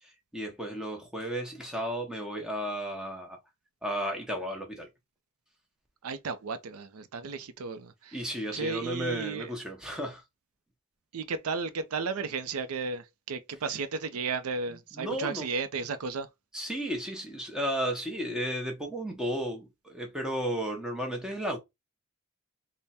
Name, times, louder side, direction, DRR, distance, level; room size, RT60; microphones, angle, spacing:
voice 1, 0.0-3.4 3.8-4.9 8.1-10.2 14.9-15.5 16.5-21.6, equal, 5° right, 0.8 m, -33 dB
voice 2, 6.0-9.5 11.1-16.3, right 4 dB, 80° right, 0.5 m, -34 dB
3.4 x 2.1 x 4.1 m
head